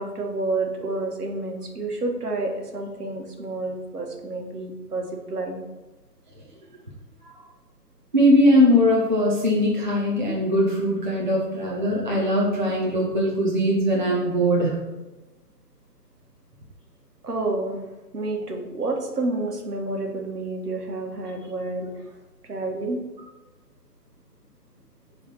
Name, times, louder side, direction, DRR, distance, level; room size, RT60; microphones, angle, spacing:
voice 1, 0.0-5.6 17.2-17.8 18.1-22.0 22.5-23.0, right 2 dB, 65° right, 2 dB, 1.7 m, -29 dB
voice 2, 8.1-14.8, equal, 30° right, -4 dB, 0.8 m, -20 dB
7.0 x 3.4 x 6.1 m, 1.1 s
hypercardioid pair, 175°, 49 cm